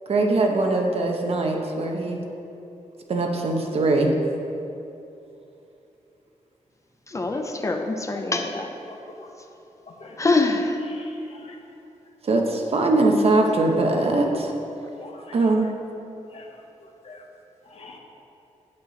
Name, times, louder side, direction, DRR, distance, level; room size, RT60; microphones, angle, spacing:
voice 1, 0.1-2.2 3.1-4.1 12.2-14.5 15.3-15.7, right 2 dB, 50° right, 2 dB, 1.0 m, -21 dB
voice 2, 7.1-8.7 10.2-10.8, left 3 dB, 25° left, 4 dB, 0.6 m, -24 dB
voice 3, 11.0-11.5 15.0-15.4 16.3-16.4 17.0-17.2 17.7-18.0, left 3 dB, 50° left, 0 dB, 1.1 m, -44 dB
8.8 x 8.1 x 4.0 m, 2.8 s
wide cardioid pair, 140°, 13 cm